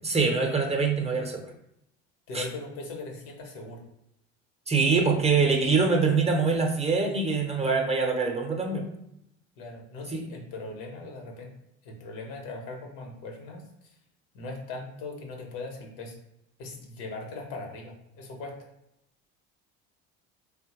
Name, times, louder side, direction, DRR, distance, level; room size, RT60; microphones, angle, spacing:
voice 1, 0.0-1.5 2.3-2.4 4.7-8.8 10.1-10.2, right 4 dB, 20° right, 2 dB, 0.6 m, -24 dB
voice 2, 2.3-3.8 9.6-11.5 11.8-13.9 14.3-16.2 16.6-18.5, left 3 dB, 75° left, 2 dB, 0.9 m, -39 dB
3.1 x 2.2 x 2.9 m, 0.82 s
supercardioid pair, 80°, 34 cm